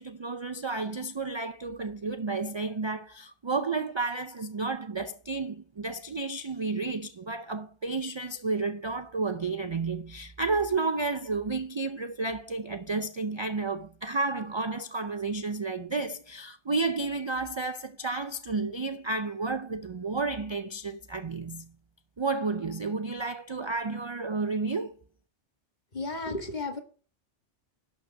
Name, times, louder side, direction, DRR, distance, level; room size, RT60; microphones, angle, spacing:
voice 1, 0.0-21.7 22.2-24.9, right 3 dB, 40° right, 0.4 m, -31 dB
voice 2, 25.9-26.8, left 3 dB, 40° left, 1.6 m, -33 dB
12.0 x 6.2 x 5.2 m
omnidirectional pair, 1.2 m